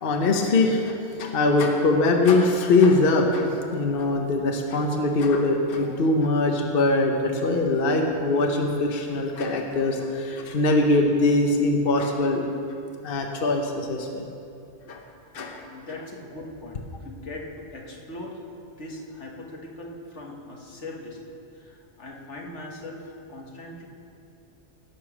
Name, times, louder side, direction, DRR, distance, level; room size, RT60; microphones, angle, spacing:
voice 1, 0.0-12.4 13.0-14.3 14.9-15.0 15.3-15.6, left 2 dB, 55° left, 2 dB, 1.1 m, -22 dB
voice 2, 15.7-18.4 18.8-23.9, left 2 dB, 80° left, -1 dB, 1.8 m, -40 dB
17.0 x 7.0 x 6.0 m, 2.6 s
omnidirectional pair, 1.2 m